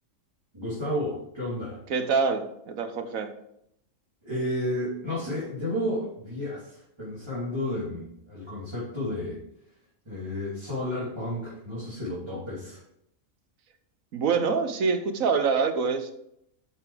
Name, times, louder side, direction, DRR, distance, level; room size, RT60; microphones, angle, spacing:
voice 1, 0.5-1.8 4.2-9.4 10.0-12.8, left 1 dB, 20° right, -9 dB, 3.2 m, -32 dB
voice 2, 1.9-3.3 14.1-16.1, right 5 dB, 80° right, 8 dB, 1.4 m, -25 dB
7.9 x 7.0 x 5.0 m, 0.75 s
omnidirectional pair, 1.4 m